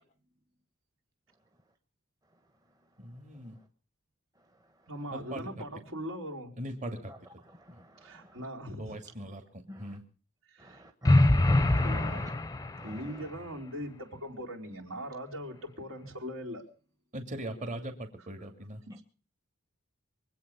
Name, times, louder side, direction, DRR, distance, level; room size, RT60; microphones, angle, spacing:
voice 1, 3.0-3.5 5.1-5.4 6.6-7.1 8.8-9.4 9.8-10.0 17.1-18.8, right 1 dB, 35° right, 4 dB, 2.6 m, -39 dB
voice 2, 4.9-6.5 8.0-8.9 10.5-10.8 11.8-12.2 12.8-16.6 18.2-18.5 18.9-19.0, equal, 75° right, -1 dB, 4.4 m, -40 dB
voice 3, 10.6-11.1 11.4-12.3 12.8-12.9, equal, 20° right, 6 dB, 1.2 m, -48 dB
sound 1, 11.1-13.1, left 1 dB, 15° left, 0.7 m, -24 dB
24.0 x 8.6 x 7.0 m, 0.39 s
head